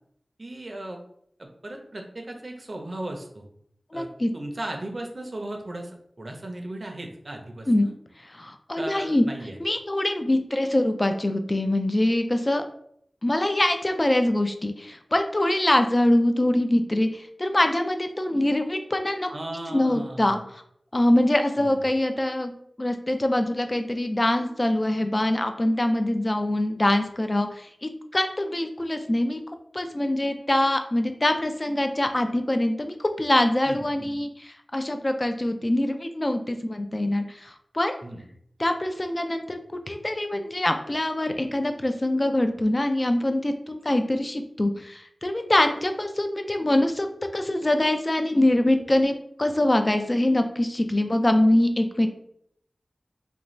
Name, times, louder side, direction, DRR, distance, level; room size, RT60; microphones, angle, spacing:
voice 1, 0.4-1.0 1.4-3.4 3.9-5.9 6.2-7.9 8.8-9.6 19.3-20.4 21.6-21.8 33.7-34.1 38.0-38.3, right 1 dB, 50° right, 2 dB, 0.5 m, -36 dB
voice 2, 3.9-4.3 7.7-7.9 8.4-9.2 9.6-12.6 13.2-19.3 19.7-20.4 20.9-22.5 22.8-29.4 29.7-38.0 38.6-47.1 47.3-52.1, left 1 dB, 35° left, 6 dB, 0.3 m, -24 dB
2.5 x 2.1 x 3.0 m, 0.69 s
wide cardioid pair, 60°, 0 cm